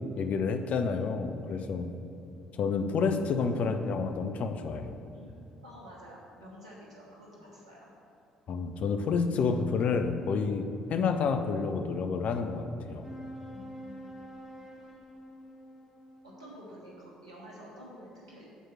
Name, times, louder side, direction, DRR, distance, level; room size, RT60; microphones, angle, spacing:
voice 1, 0.2-1.9 2.6-4.9 8.5-13.0, left 5 dB, 50° left, 7 dB, 0.5 m, -29 dB
voice 2, 5.1-7.9 13.5-14.3 16.2-18.6, equal, 90° right, -5 dB, 1.2 m, -50 dB
sound 1, 13.0-17.9, equal, 5° right, 1.7 m, -48 dB
6.8 x 4.5 x 6.1 m, 2.6 s
figure-of-eight pair, 50°, 3 cm